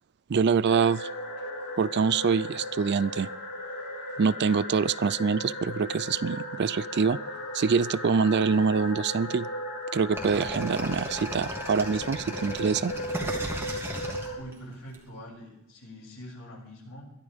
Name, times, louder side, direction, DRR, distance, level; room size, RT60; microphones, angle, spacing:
voice 1, 0.3-1.1 1.8-3.3 4.2-7.2 7.5-9.5 9.9-12.9, right 5 dB, 50° right, 18 dB, 0.4 m, -25 dB
sound 1, 0.6-14.4, left 1 dB, 85° left, 5.3 m, -36 dB
sound 2, 10.2-15.0, right 1 dB, 10° right, 2.6 m, -36 dB
voice 2, 14.3-17.0, equal, 65° left, -2 dB, 7.0 m, -44 dB
22.0 x 13.5 x 3.6 m, 0.82 s
head